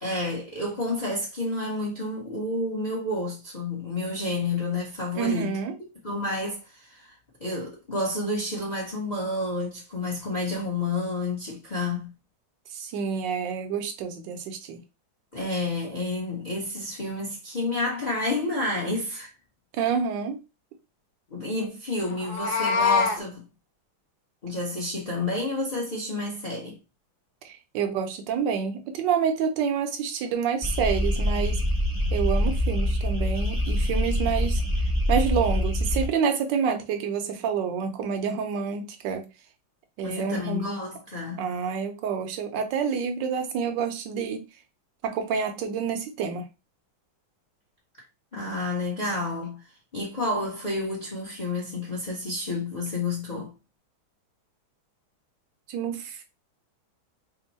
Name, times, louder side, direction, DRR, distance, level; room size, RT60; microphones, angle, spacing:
voice 1, 0.0-5.5 6.0-7.1 7.4-12.1 15.3-19.3 21.3-23.4 24.4-26.8 40.0-41.4 48.3-49.6 49.9-53.5, left 2 dB, 35° left, 0.7 m, -30 dB
voice 2, 5.2-5.7 12.7-14.8 19.7-20.4 27.4-31.6 32.1-34.6 35.1-39.3 40.0-40.8 41.4-44.4 45.0-46.5 55.7-56.2, right 6 dB, 70° right, 1.3 m, -28 dB
Meow, 22.1-23.2, left 5 dB, 65° left, 1.2 m, -24 dB
sound 1, 30.6-36.1, left 1 dB, 15° right, 0.6 m, -25 dB
3.5 x 2.2 x 4.0 m
omnidirectional pair, 2.2 m